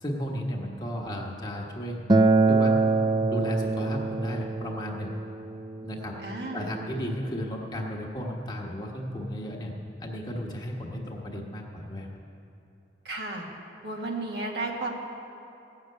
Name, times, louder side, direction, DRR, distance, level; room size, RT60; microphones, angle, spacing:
voice 1, 0.0-2.0 2.5-5.2 5.8-6.2 6.5-9.7 10.0-12.1, equal, 25° left, -1 dB, 1.3 m, -34 dB
Acoustic guitar, 2.1-7.3, right 3 dB, 25° right, 0.4 m, -25 dB
voice 2, 6.2-6.7 13.0-13.5 13.8-14.9, right 2 dB, 75° right, -1 dB, 1.7 m, -33 dB
15.5 x 6.5 x 8.7 m, 2.8 s
head